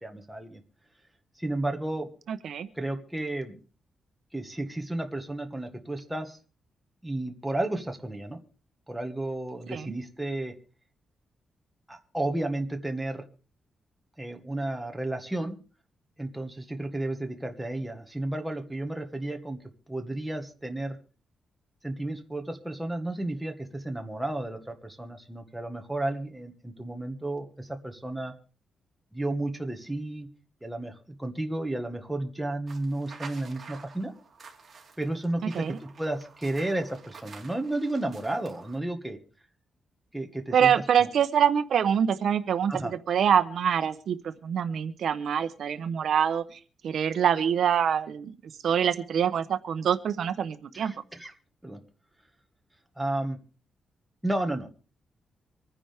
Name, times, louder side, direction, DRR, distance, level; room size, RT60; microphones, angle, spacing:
voice 1, 0.0-0.6 1.4-2.1 2.8-3.6 4.3-6.4 7.0-8.4 8.9-10.5 11.9-13.2 14.2-15.6 16.2-19.6 19.9-21.0 21.8-28.3 29.1-30.3 30.6-34.1 35.0-39.2 40.1-40.7 41.0-41.1 42.7-42.9 50.7-51.3 51.6-51.8 53.0-53.4 54.2-54.7, right 1 dB, 5° right, 3 dB, 1.5 m, -32 dB
voice 2, 2.3-2.7 9.7-9.8 35.5-35.7 40.5-42.7 43.1-48.3 48.6-50.9, right 8 dB, 65° right, 10 dB, 0.8 m, -25 dB
sound 1, 32.7-38.8, right 5 dB, 35° right, 2.9 m, -49 dB
25.5 x 10.0 x 3.5 m, 0.40 s
wide cardioid pair, 175°, 0 cm